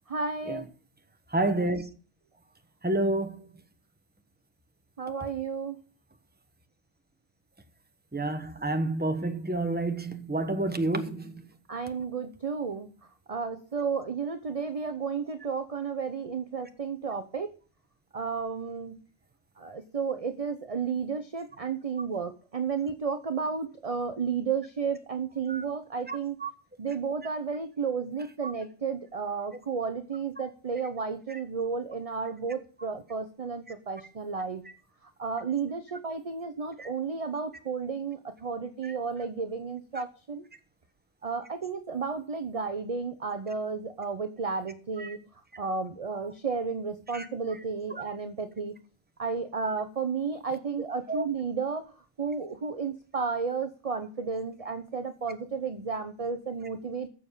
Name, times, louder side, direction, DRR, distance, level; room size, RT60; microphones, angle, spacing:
voice 1, 0.1-0.6 5.0-5.8 11.7-12.9 13.3-17.5 18.1-19.0 19.6-26.4 26.8-34.6 35.0-40.4 41.2-45.2 45.6-48.7 49.2-51.8 52.2-57.1, right 5 dB, 35° right, 0.8 m, -32 dB
voice 2, 1.3-1.9 2.8-3.5 8.1-11.4 25.5-25.6 26.1-26.5 28.4-28.5 36.8-36.9 38.8-38.9 45.0-45.2 47.1-47.3 51.1-51.2, right 2 dB, 10° right, 1.1 m, -29 dB
15.0 x 7.1 x 5.6 m
omnidirectional pair, 1.3 m